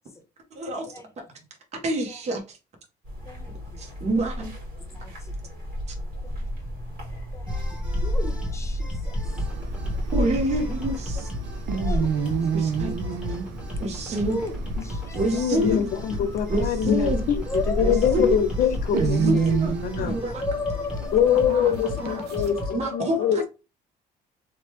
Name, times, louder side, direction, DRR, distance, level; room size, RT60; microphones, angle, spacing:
voice 1, 0.5-1.2 1.8-2.4 3.8-4.5 10.1-11.3 12.5-13.0 13.8-14.4 15.1-15.9 16.5-17.3 17.8-18.4 18.9-20.4 21.5-21.7 22.0-22.2 22.7-23.5, right 1 dB, 40° right, 0.9 m, -27 dB
sound 1, 3.0-21.4, equal, 60° right, 1.6 m, -32 dB
voice 2, 3.2-3.8 4.4-4.5 4.8-5.5 6.2-6.5 7.3-7.6 8.0-9.2 9.9-10.1 11.7-12.1 14.2-15.2 16.3-16.4 17.4-18.2 20.1-21.6 21.9-23.0, left 2 dB, 15° left, 0.6 m, -35 dB
sound 2, 7.5-22.8, left 1 dB, 5° right, 1.1 m, -36 dB
sound 3, 9.2-22.7, right 6 dB, 80° right, 0.5 m, -31 dB
voice 3, 15.3-17.4 17.8-19.5 19.8-20.2 21.1-23.5, left 9 dB, 60° left, 0.6 m, -24 dB
2.9 x 2.2 x 3.1 m
cardioid pair, 110°, 17 cm